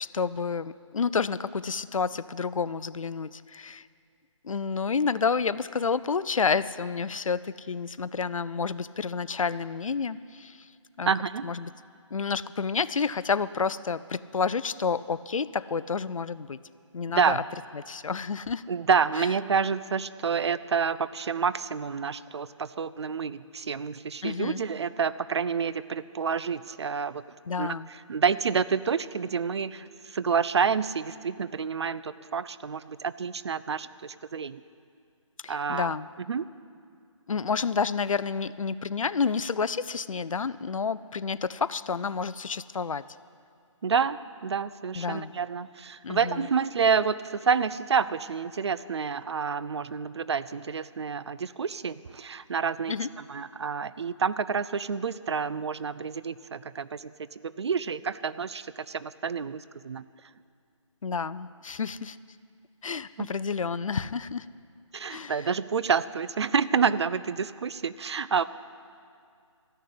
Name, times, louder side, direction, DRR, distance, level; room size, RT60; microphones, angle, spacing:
voice 1, 0.0-3.9 4.4-10.7 11.0-11.1 11.4-11.7 12.1-16.6 16.9-17.4 17.7-18.7 19.2-19.3 24.2-24.6 27.5-27.9 35.4-36.1 37.3-43.0 44.9-45.3 46.0-46.5 52.9-53.1 61.0-62.2 62.8-64.5 65.1-65.5, left 5 dB, 90° left, 17 dB, 0.5 m, -30 dB
voice 2, 11.1-11.5 17.1-17.4 18.7-27.2 27.6-27.7 28.1-34.6 35.5-35.9 36.3-36.4 43.8-53.0 53.3-57.1 57.4-60.0 63.2-63.3 64.9-68.4, right 6 dB, 55° right, 16 dB, 0.4 m, -28 dB
14.0 x 6.6 x 9.4 m, 2.3 s
figure-of-eight pair, 160°, 17 cm